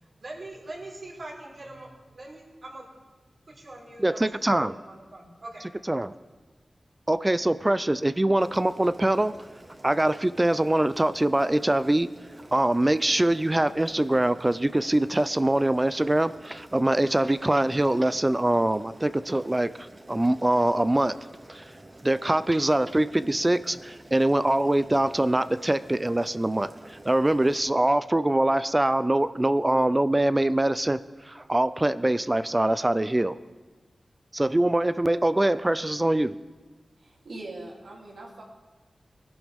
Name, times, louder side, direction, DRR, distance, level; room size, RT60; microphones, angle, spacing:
voice 1, 0.2-2.9 3.5-5.7, right 2 dB, 65° right, -4 dB, 4.5 m, -42 dB
voice 2, 4.0-4.7 5.9-6.1 7.1-9.3 9.8-12.1 12.5-21.2 21.5-21.7 22.0-33.4 34.3-36.4, right 1 dB, 25° right, 13 dB, 0.4 m, -23 dB
Boiling, 8.4-27.6, right 1 dB, 40° right, 2.0 m, -49 dB
voice 3, 37.0-38.4, right 2 dB, 85° right, -3 dB, 3.0 m, -41 dB
20.0 x 11.5 x 3.5 m, 1.3 s
cardioid pair, 50°, 0 cm